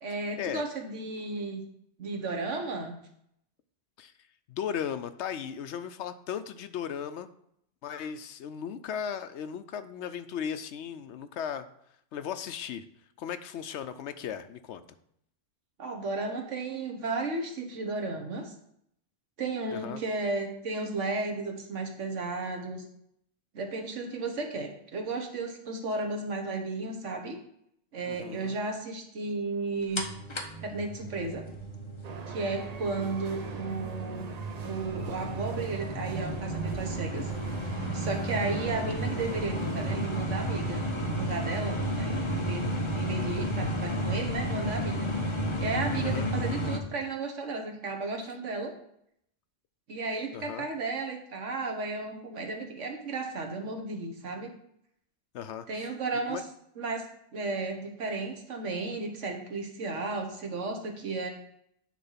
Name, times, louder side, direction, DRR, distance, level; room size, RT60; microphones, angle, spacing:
voice 1, 0.0-1.6 2.0-3.0 15.8-18.5 19.4-22.8 23.5-27.4 27.9-30.0 30.6-31.4 32.3-34.3 34.6-37.3 37.9-40.8 41.1-42.7 42.9-45.1 45.6-48.7 49.9-54.5 55.7-56.4 56.8-57.0 57.3-61.3, right 3 dB, 80° right, 3 dB, 1.6 m, -34 dB
voice 2, 4.5-7.3 7.8-11.7 12.1-12.8 13.2-14.8 19.7-20.0 28.1-28.6 33.0-33.2 46.0-46.3 50.3-50.7 55.3-55.9 56.3-56.4, left 8 dB, 70° left, 11 dB, 0.8 m, -36 dB
sound 1, 30.0-46.8, right 1 dB, 25° left, 0.8 m, -33 dB
sound 2, 32.0-40.3, right 5 dB, 40° right, 0.6 m, -42 dB
10.0 x 3.4 x 5.6 m, 0.73 s
omnidirectional pair, 1.2 m